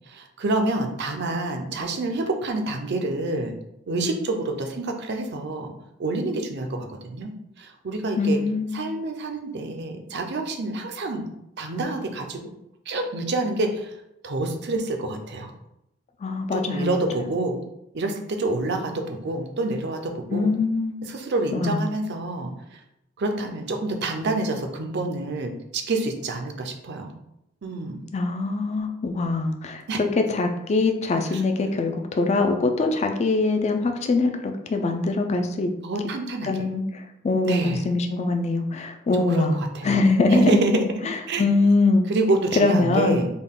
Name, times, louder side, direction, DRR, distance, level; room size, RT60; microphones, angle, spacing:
voice 1, 0.1-3.5 3.9-5.7 6.0-7.3 7.6-8.4 8.7-11.3 11.6-12.4 12.9-13.9 14.2-15.5 16.5-17.6 17.9-20.5 21.0-22.8 23.2-27.1 27.6-28.0 29.9-30.0 31.3-31.4 35.8-36.6 37.4-37.9 39.1-40.0 40.3-41.5 42.1-43.3, right 2 dB, 55° right, 4 dB, 0.5 m, -27 dB
voice 2, 8.2-8.9 16.2-16.9 20.3-21.0 21.5-21.8 28.1-29.8 30.2-35.7 36.4-40.5 41.4-42.1 42.6-43.2, left 3 dB, 35° left, 5 dB, 0.3 m, -23 dB
3.7 x 2.3 x 3.6 m, 0.83 s
head